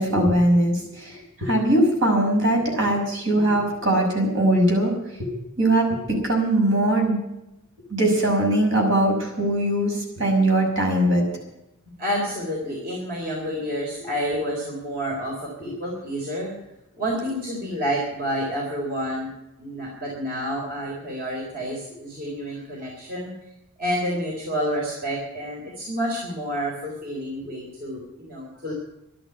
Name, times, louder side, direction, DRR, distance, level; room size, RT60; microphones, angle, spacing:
voice 1, 0.0-5.3 5.6-7.3 7.9-11.3 14.0-14.1 15.7-15.8 27.4-27.5, right 1 dB, 60° right, 1 dB, 5.9 m, -21 dB
voice 2, 12.0-16.5 17.0-19.3 19.6-23.3 23.8-28.7, equal, 45° right, -3 dB, 3.9 m, -29 dB
12.5 x 11.0 x 9.4 m, 0.89 s
head